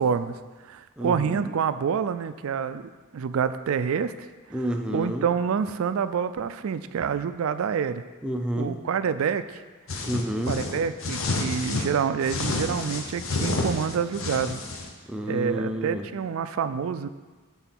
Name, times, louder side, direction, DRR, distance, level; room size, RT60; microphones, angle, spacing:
voice 1, 0.0-2.8 3.1-4.1 4.9-8.0 8.6-9.6 10.5-14.6 15.3-17.1, right 6 dB, 80° right, 12 dB, 0.4 m, -27 dB
voice 2, 1.0-1.5 4.5-5.3 8.2-8.7 10.1-10.6 15.1-16.0, equal, 5° right, 3 dB, 0.5 m, -29 dB
sound 1, 9.9-11.9 12.2-14.9, left 2 dB, 70° left, 0.9 m, -29 dB
8.1 x 3.9 x 6.0 m, 1.3 s
head